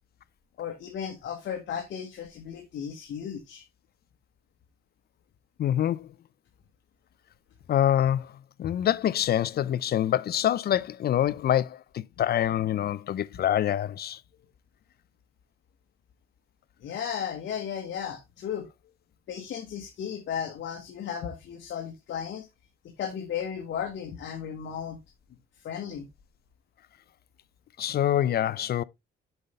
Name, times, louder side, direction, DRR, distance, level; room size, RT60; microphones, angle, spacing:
voice 1, 0.6-3.6 16.8-18.7 19.3-22.5 23.0-25.0 25.6-26.1, left 8 dB, 70° left, 1.4 m, -35 dB
voice 2, 5.6-6.1 7.7-8.3 8.6-14.2 27.8-28.8, left 11 dB, 55° left, 0.4 m, -25 dB
8.0 x 5.5 x 3.2 m
cardioid pair, 90°, 20 cm